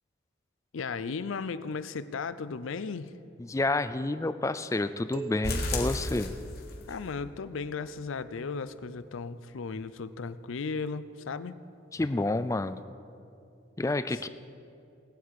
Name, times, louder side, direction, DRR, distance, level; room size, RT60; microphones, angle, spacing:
voice 1, 0.7-3.1 6.9-11.6 14.1-14.2, left 4 dB, 85° left, 14 dB, 0.5 m, -36 dB
voice 2, 3.5-6.3 12.0-12.8 13.8-14.3, left 2 dB, 15° left, 12 dB, 0.3 m, -29 dB
sound 1, 5.1-7.5, right 4 dB, 45° right, 0.9 m, -43 dB
sound 2, 5.4-7.0 7.3-7.4 7.8-7.9 8.3-8.4, left 2 dB, 50° left, 1.6 m, -33 dB
19.0 x 8.6 x 4.8 m, 2.6 s
head